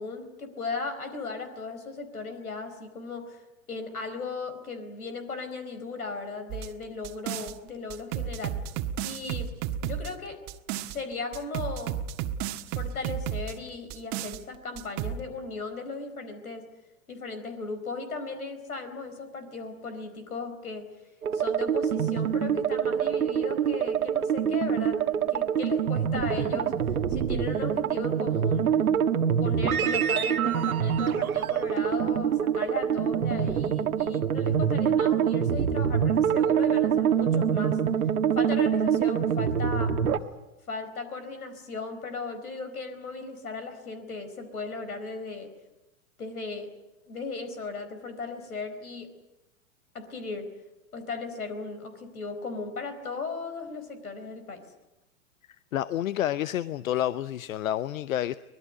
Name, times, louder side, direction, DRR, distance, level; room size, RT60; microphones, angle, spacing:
voice 1, 0.0-8.6 9.0-9.5 9.8-10.4 10.8-12.0 12.7-16.7 17.1-20.9 21.3-25.0 25.3-26.7 27.1-28.7 29.4-37.8 38.3-40.0 40.7-45.5 46.2-46.7 47.1-49.1 49.9-50.5 50.9-54.6, left 4 dB, 85° left, 10 dB, 4.5 m, -37 dB
sound 1, 6.5-7.5 7.9-11.0 11.3-13.5 13.9-14.4 14.8-15.2, right 10 dB, 40° right, 1.5 m, -33 dB
sound 2, 21.2-40.2, right 8 dB, 80° right, 1.5 m, -25 dB
voice 2, 55.7-58.4, left 12 dB, 70° left, 16 dB, 0.9 m, -29 dB
24.5 x 20.0 x 9.4 m, 0.97 s
hypercardioid pair, 105°, 43 cm